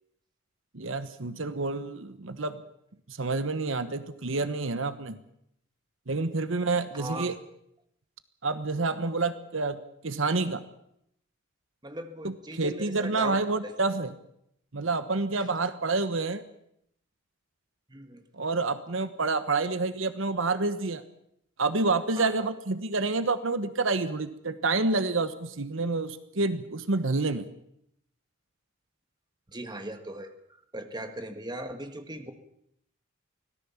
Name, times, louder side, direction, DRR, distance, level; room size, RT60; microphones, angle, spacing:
voice 1, 0.7-2.6 3.1-5.2 6.1-7.4 8.4-10.6 12.2-14.1 14.7-16.4 18.3-21.0 21.6-27.4, right 3 dB, 65° right, 12 dB, 1.2 m, -28 dB
voice 2, 6.9-7.3 11.8-13.7 15.4-15.5 17.9-18.2 22.2-22.5 29.5-30.3 30.7-32.3, right 1 dB, 20° right, 7 dB, 1.7 m, -39 dB
24.5 x 17.5 x 7.2 m, 0.74 s
head